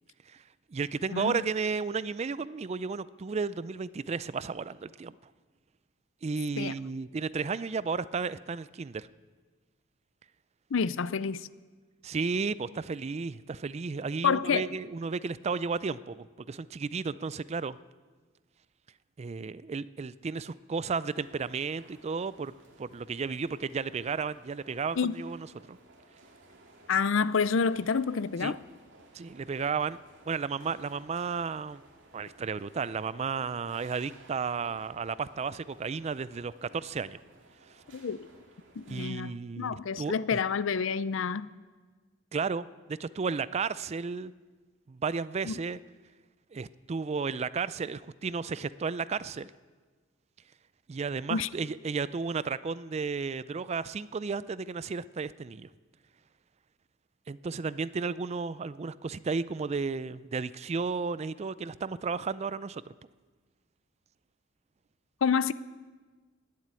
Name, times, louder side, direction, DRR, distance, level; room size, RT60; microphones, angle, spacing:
voice 1, 0.7-5.2 6.2-9.1 12.0-17.8 19.2-25.8 28.4-28.6 29.1-30.0 30.3-31.8 32.1-37.2 38.9-40.4 42.3-44.3 44.9-45.8 46.5-49.5 50.9-55.7 57.3-62.8, right 5 dB, 35° right, 0.4 m, -33 dB
voice 2, 10.7-11.5 14.2-14.7 25.0-25.1 26.9-28.6 37.9-38.3 38.8-41.5 45.5-45.6 51.3-51.5 65.2-65.5, left 6 dB, 75° left, 0.5 m, -28 dB
sound 1, 21.0-39.1, right 2 dB, 70° right, 2.2 m, -57 dB
18.5 x 7.5 x 9.6 m
head